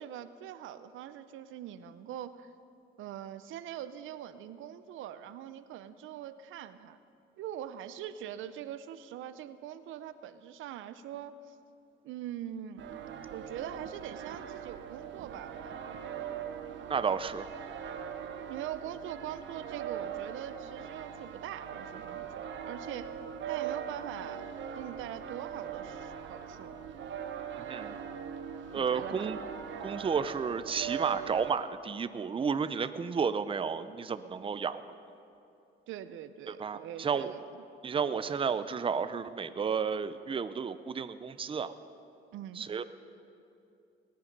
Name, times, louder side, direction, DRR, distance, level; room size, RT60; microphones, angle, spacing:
voice 1, 0.0-2.5 3.0-7.0 7.4-11.5 12.0-12.9 13.3-16.0 18.5-23.2 23.5-24.5 24.7-26.8 28.8-29.3 35.9-37.6 42.3-42.7, right 11 dB, 85° right, 13 dB, 0.6 m, -43 dB
sound 1, 12.8-31.5, right 8 dB, 70° right, 1.0 m, -41 dB
voice 2, 16.9-17.5 27.6-28.0 28.7-29.4 29.8-34.8 36.5-37.3 37.8-41.7 42.6-42.8, right 6 dB, 25° right, 12 dB, 0.5 m, -32 dB
18.5 x 10.5 x 5.3 m, 2.7 s
cardioid pair, 90°, 20 cm